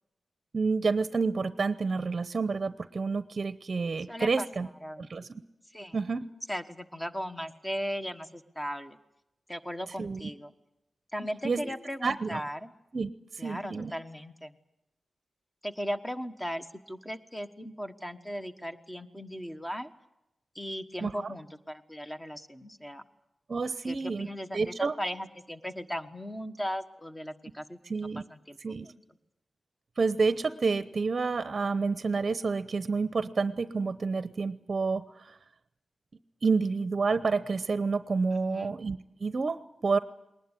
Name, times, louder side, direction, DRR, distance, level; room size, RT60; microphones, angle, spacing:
voice 1, 0.5-4.7 5.0-5.4 5.9-6.3 10.0-10.3 11.4-11.7 12.0-12.4 12.9-13.9 21.0-21.1 23.5-24.3 24.5-24.9 27.9-28.2 28.6-28.9 30.0-35.4 36.4-40.0, right 4 dB, 40° right, 13 dB, 0.8 m, -29 dB
voice 2, 4.1-5.1 5.7-6.0 6.5-9.0 9.5-10.5 11.1-12.7 13.4-14.5 15.6-19.9 20.5-23.0 23.8-29.0 38.3-38.8, equal, 10° left, 8 dB, 1.4 m, -37 dB
21.0 x 19.5 x 9.8 m, 0.88 s
wide cardioid pair, 130°, 0 cm